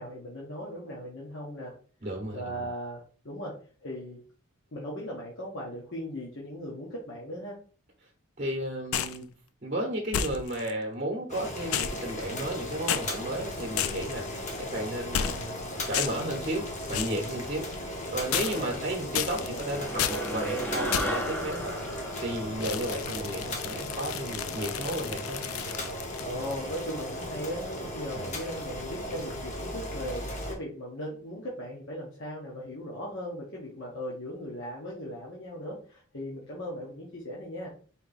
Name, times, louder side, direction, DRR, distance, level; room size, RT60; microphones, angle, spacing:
voice 1, 0.0-1.7 2.3-3.6 3.8-4.2 4.7-7.6 18.3-19.0 19.3-19.7 26.2-37.7, equal, 60° left, -4 dB, 1.1 m, -38 dB
voice 2, 2.0-2.7 8.4-9.3 9.6-15.6 15.9-21.9 22.2-25.4 28.2-28.3, right 1 dB, 35° right, -1 dB, 0.9 m, -33 dB
sound 1, 8.9-9.2 10.1-10.7 11.7-12.6 12.9-13.1 13.8-14.2 15.1-15.6 15.9-16.3 16.9-17.2 18.3-18.8 19.1-19.6 20.0-20.3 20.9-21.3 22.6-26.6, left 9 dB, 80° left, 0.4 m, -32 dB
Boiling, 11.3-30.5, left 1 dB, 35° left, 1.0 m, -37 dB
sound 2, 19.5-24.2, right 1 dB, 10° left, 0.6 m, -35 dB
4.2 x 2.9 x 4.0 m, 0.40 s
head